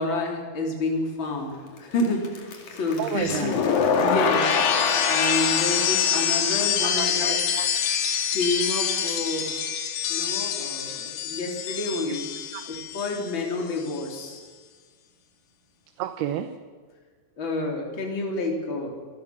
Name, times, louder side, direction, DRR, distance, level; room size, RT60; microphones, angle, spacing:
voice 1, 0.0-2.4 2.7-3.6 4.0-7.4 8.3-9.6 10.1-12.3 12.7-14.4 17.4-18.9, left 2 dB, 30° left, 1 dB, 3.8 m, -29 dB
Applause, 1.0-6.8, left 4 dB, 50° left, 3.6 m, -43 dB
voice 2, 3.0-3.6 6.8-8.0 12.1-12.2 12.5-12.6 16.0-16.6, right 11 dB, 80° right, 9 dB, 2.8 m, -32 dB
sound 1, 3.3-13.4 13.7-14.1, left 7 dB, 65° left, 3.6 m, -25 dB
27.5 x 19.5 x 6.2 m, 1.5 s
omnidirectional pair, 4.7 m